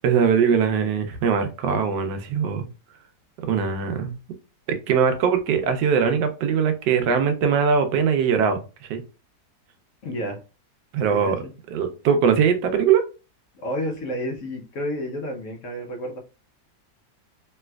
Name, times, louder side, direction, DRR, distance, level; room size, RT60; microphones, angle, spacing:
voice 1, 0.0-2.7 3.5-4.2 4.7-9.0 10.9-11.4 11.7-13.0, right 6 dB, 85° right, 8 dB, 1.2 m, -21 dB
voice 2, 10.0-10.4 11.0-11.5 13.5-16.2, equal, 60° left, 2 dB, 0.9 m, -31 dB
3.2 x 2.9 x 2.2 m, 0.33 s
omnidirectional pair, 1.8 m